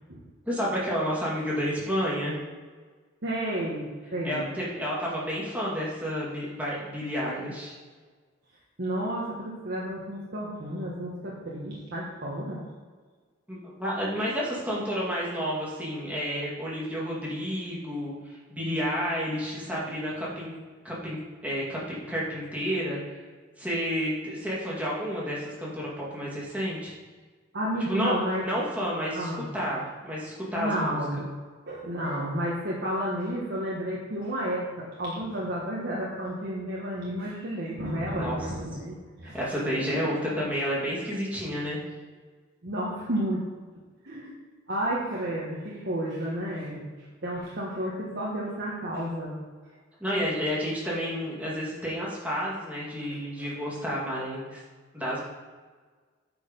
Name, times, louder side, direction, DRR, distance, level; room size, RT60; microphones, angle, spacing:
voice 1, 0.5-2.4 4.2-7.8 13.5-20.5 20.8-23.0 23.6-26.9 27.8-28.2 28.4-31.0 38.2-38.4 39.3-41.8 50.0-54.6 54.9-55.2, equal, 5° right, -6 dB, 2.1 m, -30 dB
voice 2, 3.2-4.4 8.8-12.7 27.5-28.4 29.1-29.4 30.5-31.3 31.7-39.4 39.9-40.0 42.6-43.4 44.0-44.3 44.7-46.8 47.2-49.3 53.4-53.5, right 1 dB, 55° right, -5 dB, 1.3 m, -31 dB
9.2 x 4.5 x 5.2 m, 1.5 s
head